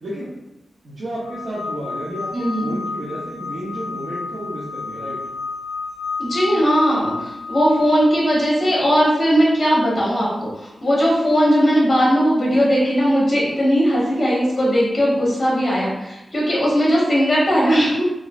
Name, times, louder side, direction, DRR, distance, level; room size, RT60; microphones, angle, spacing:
voice 1, 0.0-0.3 0.8-5.2, right 1 dB, 60° right, -8 dB, 0.7 m, -31 dB
sound 1, 1.2-9.0, left 4 dB, 75° left, 0.5 m, -31 dB
voice 2, 2.3-2.7 6.2-18.0, equal, 30° left, -7 dB, 1.0 m, -18 dB
3.0 x 2.6 x 2.4 m, 0.94 s
wide cardioid pair, 165°, 0 cm